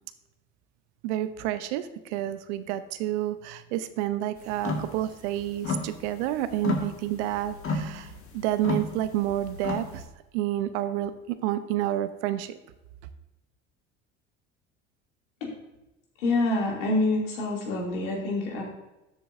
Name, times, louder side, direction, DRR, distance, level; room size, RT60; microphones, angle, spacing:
voice 1, 1.0-10.0 10.3-12.6, right 13 dB, 65° right, 12 dB, 0.8 m, -29 dB
sound 1, 4.5-4.9 5.3-6.3 6.6-10.0, left 3 dB, 35° left, 1.8 m, -32 dB
voice 2, 16.2-18.6, left 2 dB, 75° left, -2 dB, 2.9 m, -26 dB
12.5 x 7.8 x 2.7 m, 0.96 s
hypercardioid pair, 65°, 37 cm